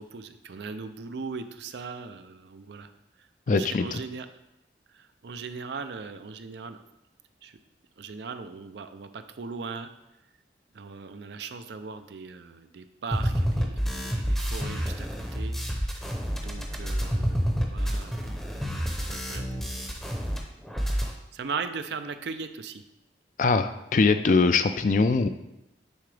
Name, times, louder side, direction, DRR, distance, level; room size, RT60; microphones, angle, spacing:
voice 1, 0.0-2.9 3.5-4.3 5.0-6.8 7.4-7.6 8.0-9.9 10.7-16.1 16.4-18.3 19.0-19.9 21.3-22.8, right 5 dB, 70° right, 10 dB, 0.4 m, -39 dB
voice 2, 3.5-4.0 23.4-25.3, left 4 dB, 45° left, 10 dB, 0.3 m, -22 dB
sound 1, 13.1-20.4 20.6-21.1, equal, ahead, 0.7 m, -28 dB
9.4 x 3.8 x 3.3 m, 0.89 s
head